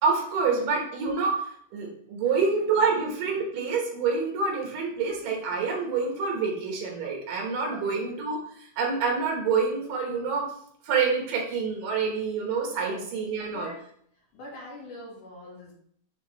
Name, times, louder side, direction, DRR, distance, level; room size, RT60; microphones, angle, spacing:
voice 1, 0.0-10.5 10.8-13.7, right 5 dB, 80° right, -1 dB, 3.1 m, -27 dB
voice 2, 2.2-3.1 7.7-8.0 12.8-13.8 14.3-15.7, left 1 dB, 70° left, -4 dB, 3.5 m, -44 dB
9.3 x 3.7 x 3.2 m, 0.64 s
omnidirectional pair, 3.8 m